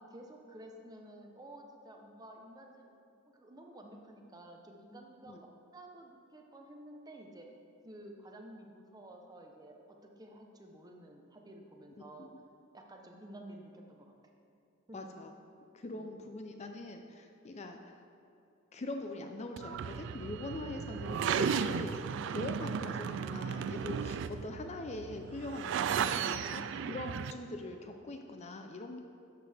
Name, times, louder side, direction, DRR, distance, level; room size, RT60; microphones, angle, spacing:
voice 1, 0.0-2.9 3.3-7.5 7.8-12.3 12.7-14.2 14.9-15.1 15.9-16.3, right 1 dB, 20° right, 2 dB, 0.8 m, -52 dB
voice 2, 14.9-15.3 15.7-18.0 18.7-22.0 22.3-29.0, left 2 dB, 35° left, 5 dB, 0.5 m, -42 dB
sound 1, 19.6-27.3, right 7 dB, 60° right, 0.3 m, -35 dB
11.5 x 6.6 x 3.4 m, 2.7 s
head